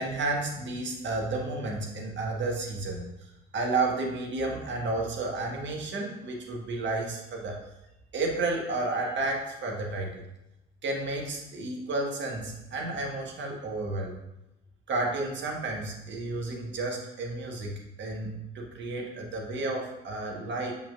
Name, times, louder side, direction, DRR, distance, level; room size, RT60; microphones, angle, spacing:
voice 1, 0.0-7.6 8.1-10.1 10.8-14.1 14.9-20.7, right 2 dB, 40° right, -1 dB, 1.5 m, -32 dB
7.8 x 5.4 x 2.5 m, 0.92 s
figure-of-eight pair, 50°, 30 cm